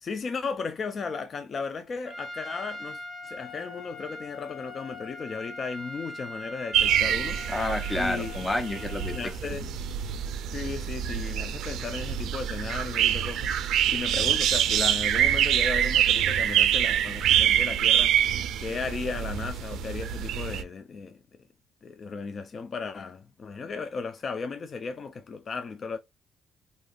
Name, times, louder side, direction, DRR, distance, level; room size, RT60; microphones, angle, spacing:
voice 1, 0.0-7.4 7.9-8.3 9.1-9.7 10.5-21.2 21.8-26.0, left 4 dB, 45° left, 0.4 m, -35 dB
Trumpet, 2.1-9.4, left 2 dB, 30° left, 1.1 m, -41 dB
sound 1, 6.7-20.6, right 10 dB, 80° right, 0.4 m, -26 dB
voice 2, 7.5-9.1 9.6-9.7, left 1 dB, 15° left, 0.7 m, -29 dB
3.3 x 2.7 x 2.3 m
cardioid pair, 90°, 0 cm